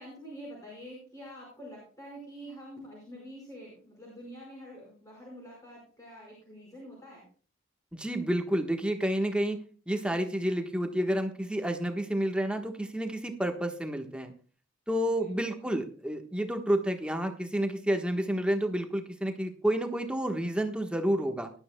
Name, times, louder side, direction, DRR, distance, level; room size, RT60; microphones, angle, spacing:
voice 1, 0.0-7.3 15.0-15.7, equal, 15° left, -3 dB, 4.9 m, -47 dB
voice 2, 7.9-9.6 9.9-14.3 14.9-21.5, right 1 dB, 5° right, 4 dB, 1.2 m, -30 dB
19.0 x 12.0 x 2.2 m, 0.39 s
head